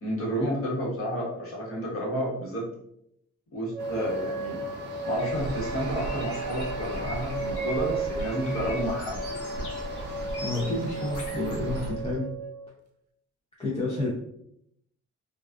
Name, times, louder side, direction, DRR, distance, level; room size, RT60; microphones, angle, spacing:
voice 1, 0.0-2.6 3.5-4.6 5.0-9.5, equal, 45° left, -3 dB, 1.2 m, -31 dB
sound 1, 3.7-12.7, right 2 dB, 85° right, 0.5 m, -34 dB
sound 2, 3.8-11.9, right 3 dB, 35° right, 0.5 m, -41 dB
sound 3, 5.2-12.1, right 1 dB, 85° left, 0.9 m, -38 dB
voice 2, 10.4-12.4 13.6-14.1, left 2 dB, 20° left, -5 dB, 0.6 m, -30 dB
2.4 x 2.3 x 2.2 m, 0.74 s
cardioid pair, 90°, 30 cm